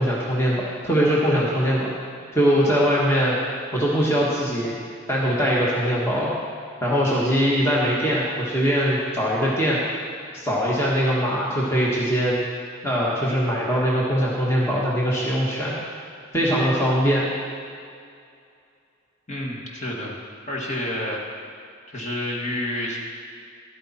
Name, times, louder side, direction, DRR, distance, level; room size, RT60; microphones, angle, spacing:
voice 1, 0.0-1.9 2.3-3.4 3.7-4.7 5.1-6.3 6.8-9.8 10.3-12.4 12.8-15.7 16.3-17.3, equal, 15° left, -6 dB, 1.6 m, -21 dB
voice 2, 19.3-20.2 20.5-21.2 21.9-23.0, left 1 dB, 35° left, -2 dB, 1.9 m, -29 dB
14.0 x 12.0 x 4.3 m, 2.3 s
head